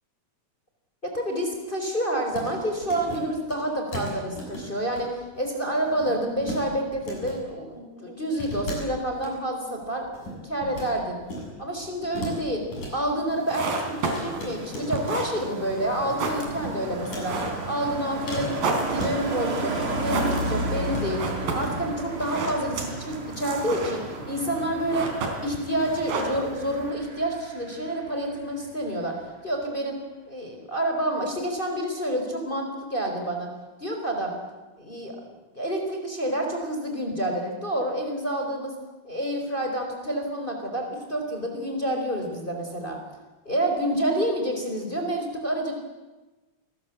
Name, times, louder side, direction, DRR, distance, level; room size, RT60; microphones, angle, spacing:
voice 1, 1.0-11.2 11.6-12.6 12.9-17.4 17.7-24.0 24.3-25.1 25.4-29.2 29.4-30.0 30.3-33.5 33.8-34.3 34.8-35.2 35.6-38.7 39.0-43.0 43.5-45.7, right 1 dB, 15° left, 3 dB, 4.0 m, -28 dB
sound 1, 2.3-2.5 2.8-3.2 3.5-3.6 3.9-5.0 5.3-5.5 5.8-6.6 6.9-7.3 8.3-9.3 9.8-10.9 11.2-11.5 11.8-12.9 14.0-15.5 15.8-16.2 16.4-17.4 18.3-19.6 20.2-20.5 20.8-21.1 21.4-21.8, left 1 dB, 50° left, 8.8 m, -37 dB
sound 2, 13.3-26.9, right 3 dB, 70° right, 5.5 m, -33 dB
Car passing by, 13.9-28.7 28.9-29.3, right 2 dB, 35° right, 4.3 m, -34 dB
28.5 x 20.0 x 8.3 m, 1.2 s
omnidirectional pair, 4.4 m